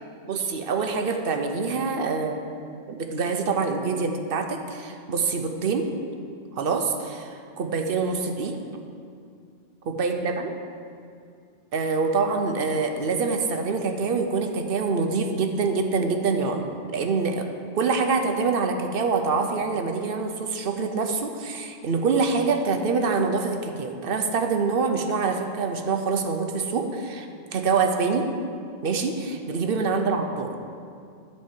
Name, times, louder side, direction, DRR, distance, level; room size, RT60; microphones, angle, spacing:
voice 1, 0.2-2.4 2.9-5.9 6.5-8.6 9.9-10.5 11.7-16.6 16.9-17.5 17.7-28.3 28.8-30.5, right 4 dB, 60° right, 5 dB, 0.9 m, -25 dB
10.5 x 4.4 x 7.4 m, 2.4 s
omnidirectional pair, 1.2 m